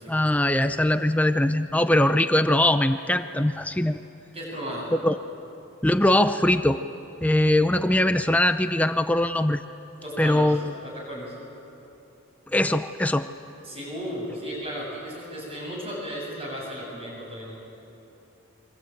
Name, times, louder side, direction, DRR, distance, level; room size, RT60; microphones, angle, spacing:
voice 1, 0.1-4.0 5.0-5.2 5.8-6.8 7.2-9.6 10.2-10.6 12.5-13.3, left 1 dB, 5° left, 9 dB, 0.5 m, -21 dB
voice 2, 4.3-4.9 10.0-11.4 13.6-17.6, equal, 25° right, -2 dB, 7.9 m, -35 dB
27.5 x 24.5 x 8.8 m, 2.8 s
head